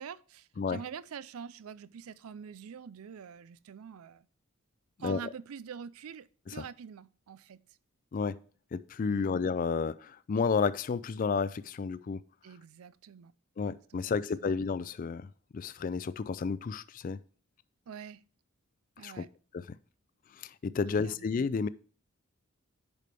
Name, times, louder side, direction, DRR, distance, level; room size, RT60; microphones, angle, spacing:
voice 1, 0.0-4.3 5.0-7.6 9.0-9.3 12.4-13.3 13.9-14.5 17.9-18.2 19.0-19.3 20.9-21.3, right 7 dB, 85° right, 0.4 m, -45 dB
voice 2, 8.7-12.2 13.6-17.2 19.0-19.3 19.5-19.8 20.3-21.7, left 5 dB, 40° left, 0.3 m, -31 dB
10.5 x 5.1 x 3.3 m
head